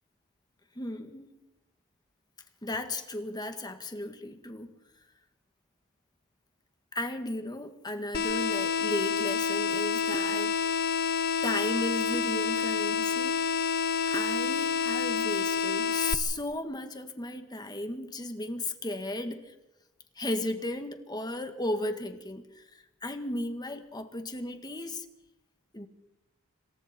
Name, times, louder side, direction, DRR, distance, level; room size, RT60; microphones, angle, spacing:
voice 1, 0.8-1.4 2.6-4.7 6.9-10.5 11.4-13.4 14.1-19.5 20.2-25.1 25.7-25.9, left 1 dB, 20° left, 7 dB, 1.9 m, -35 dB
sound 1, 8.1-16.1, left 6 dB, 45° left, 0.9 m, -28 dB
27.0 x 25.5 x 4.5 m, 0.91 s
head